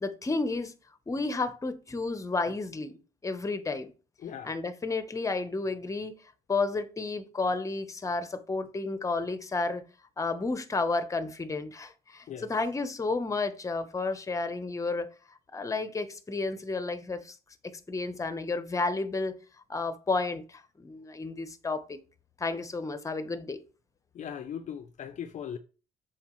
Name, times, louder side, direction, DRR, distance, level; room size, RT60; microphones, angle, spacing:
voice 1, 0.0-0.7 1.1-3.9 4.4-6.2 6.5-9.8 10.2-15.1 15.5-17.4 17.6-19.3 19.7-22.0 22.4-23.6, left 3 dB, 20° left, 0.9 m, -32 dB
voice 2, 4.2-4.5 12.3-12.5 24.1-25.6, left 8 dB, 45° left, 0.5 m, -38 dB
7.1 x 4.9 x 3.1 m
cardioid pair, 110°, 17 cm